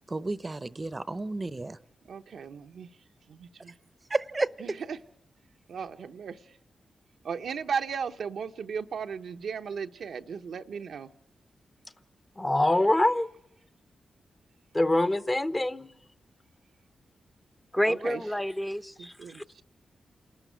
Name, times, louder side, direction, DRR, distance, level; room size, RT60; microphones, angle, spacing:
voice 1, 0.1-1.8 4.1-4.8, right 2 dB, 35° right, 0.8 m, -31 dB
voice 2, 2.1-2.9 3.3-3.7 4.6-5.0 5.7-6.4 7.2-11.1 17.9-18.2 19.0-19.6, right 6 dB, 75° right, 0.8 m, -36 dB
voice 3, 12.4-13.3 14.7-15.9, left 1 dB, 25° left, 1.1 m, -24 dB
voice 4, 17.7-19.6, equal, 10° left, 0.8 m, -30 dB
28.0 x 13.5 x 9.1 m
supercardioid pair, 40°, 0 cm